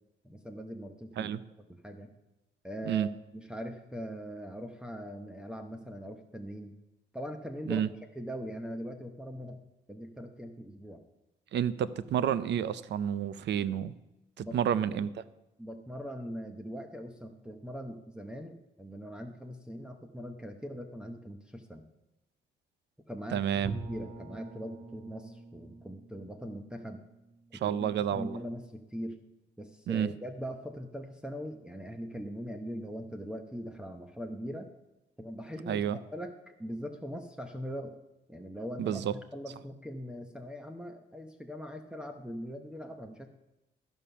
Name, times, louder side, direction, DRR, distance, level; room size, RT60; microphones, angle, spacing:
voice 1, 0.2-1.3 1.8-2.1 2.6-6.7 7.1-7.8 8.1-9.6 9.9-11.0 14.4-15.0 15.6-21.9 23.1-27.0 27.5-29.2 29.6-34.7 35.2-38.0 38.3-43.3, equal, 5° right, 2 dB, 0.9 m, -41 dB
voice 2, 11.5-13.9 14.4-15.1 23.3-23.7 27.6-28.4 29.9-30.1 35.7-36.0 38.8-39.1, right 9 dB, 60° right, 16 dB, 0.6 m, -30 dB
Bowed string instrument, 23.6-28.5, right 4 dB, 40° right, 1.4 m, -45 dB
13.0 x 5.4 x 5.7 m, 0.96 s
cardioid pair, 90°, 20 cm